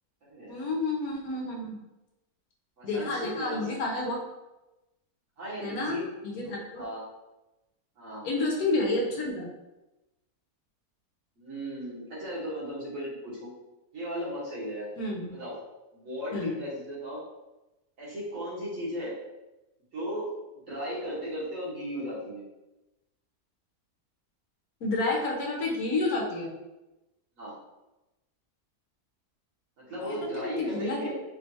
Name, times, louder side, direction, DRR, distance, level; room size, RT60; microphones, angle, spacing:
voice 1, 0.5-1.8 2.8-4.2 5.6-6.8 8.2-9.5 15.0-15.3 16.3-16.5 24.8-26.5 30.0-30.2 30.6-31.1, left 2 dB, 70° left, -2 dB, 1.3 m, -30 dB
voice 2, 2.8-3.7 5.4-6.1 6.4-7.0 8.0-8.3 11.4-13.5 13.9-14.9 15.3-15.6 15.9-17.2 18.0-19.2 19.9-20.3 20.7-22.4 27.4-27.6 29.8-31.1, equal, 55° right, -8 dB, 1.8 m, -36 dB
4.5 x 3.2 x 2.8 m, 0.99 s
omnidirectional pair, 1.6 m